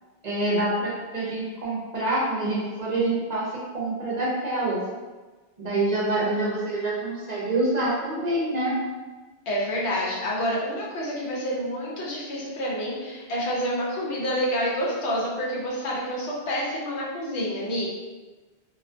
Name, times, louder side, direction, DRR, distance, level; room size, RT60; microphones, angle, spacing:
voice 1, 0.2-3.5 3.7-4.8 5.6-8.7, right 2 dB, 50° right, -6 dB, 0.6 m, -26 dB
voice 2, 9.5-17.9, equal, 90° left, -5 dB, 1.0 m, -28 dB
2.4 x 2.3 x 2.4 m, 1.3 s
omnidirectional pair, 1.1 m